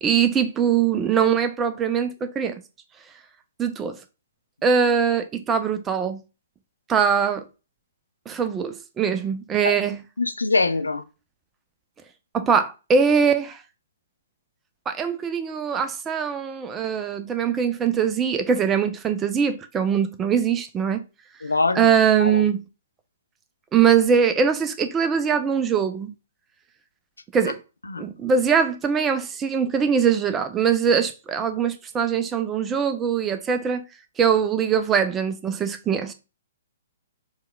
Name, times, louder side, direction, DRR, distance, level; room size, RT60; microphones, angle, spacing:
voice 1, 0.0-2.6 3.6-4.0 4.6-6.2 6.9-7.4 8.3-10.0 12.3-13.6 14.9-21.0 21.7-22.6 23.7-26.1 27.3-27.6 28.0-33.8 34.2-36.1, right 7 dB, 15° right, 0.4 m, -22 dB
voice 2, 10.2-11.0 21.4-21.9 22.2-22.5 27.9-28.0, left 3 dB, 80° left, 0.4 m, -23 dB
4.4 x 2.2 x 2.2 m
figure-of-eight pair, 120°, 0 cm